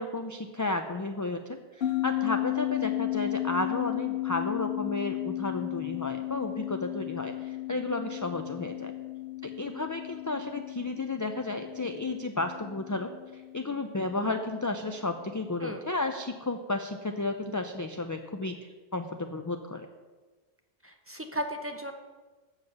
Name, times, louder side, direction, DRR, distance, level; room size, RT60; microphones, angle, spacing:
voice 1, 0.0-8.9 9.4-18.6 18.9-19.9, left 2 dB, 30° left, 5 dB, 0.4 m, -33 dB
sound 1, 1.8-14.6, left 17 dB, 65° left, 0.9 m, -34 dB
voice 2, 20.8-21.9, equal, 15° right, 4 dB, 0.8 m, -35 dB
7.3 x 7.2 x 7.8 m, 1.3 s
omnidirectional pair, 1.1 m